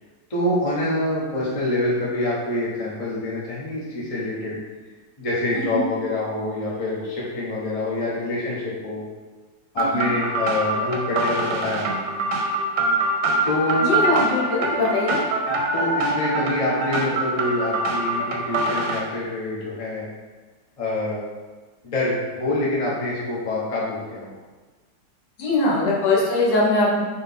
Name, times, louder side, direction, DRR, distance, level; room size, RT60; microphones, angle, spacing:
voice 1, 0.3-4.6 5.2-9.0 9.7-12.0 13.4-14.0 15.5-20.1 20.8-21.2 21.8-24.3, left 2 dB, 25° left, -7 dB, 0.9 m, -26 dB
voice 2, 5.5-5.8 9.9-10.1 13.8-15.2 25.4-27.0, left 2 dB, 75° left, -3 dB, 1.4 m, -21 dB
sound 1, 9.8-19.0, right 2 dB, 70° right, 1.2 m, -24 dB
4.0 x 3.1 x 3.6 m, 1.3 s
omnidirectional pair, 2.0 m